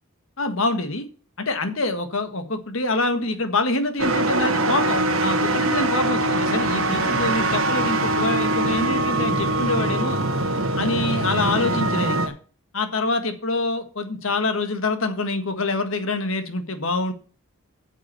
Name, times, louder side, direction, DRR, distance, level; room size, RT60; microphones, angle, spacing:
voice 1, 0.4-1.0 1.4-10.2 10.8-12.3 12.7-17.1, left 2 dB, 65° left, 8 dB, 1.7 m, -25 dB
sound 1, 4.0-12.3, right 2 dB, 65° right, 1.4 m, -22 dB
8.9 x 7.2 x 6.8 m, 0.40 s
head